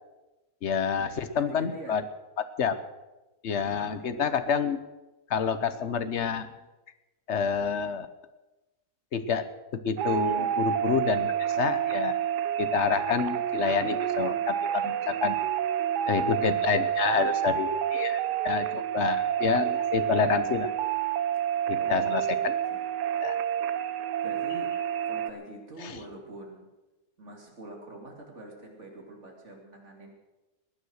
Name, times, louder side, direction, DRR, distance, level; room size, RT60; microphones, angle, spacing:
voice 1, 0.6-2.0 2.6-2.8 3.4-4.8 5.3-6.5 7.3-8.1 9.1-9.5 9.7-12.2 12.6-15.3 16.1-20.7 21.7-22.5 23.2-23.4 25.8-25.9, left 6 dB, 50° left, 11 dB, 1.1 m, -28 dB
voice 2, 1.3-2.0 3.5-4.0 21.5-22.9 24.2-24.7 25.0-26.6 27.2-30.1, right 2 dB, 45° right, 0 dB, 3.2 m, -45 dB
sound 1, 10.0-25.3, right 10 dB, 85° right, 1.3 m, -28 dB
19.5 x 9.9 x 6.5 m, 1.1 s
omnidirectional pair, 1.7 m